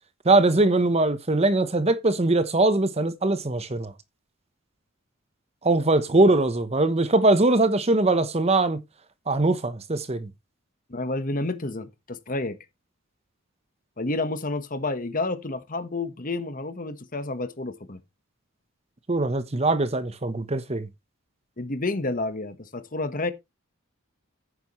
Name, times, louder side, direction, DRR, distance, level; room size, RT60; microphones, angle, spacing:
voice 1, 0.2-3.9 5.6-8.8 9.3-10.3 19.1-20.9, right 2 dB, 30° right, 0.9 m, -21 dB
voice 2, 10.9-12.6 14.0-18.0 21.6-23.3, left 2 dB, 40° left, 1.3 m, -30 dB
11.0 x 9.4 x 3.1 m
head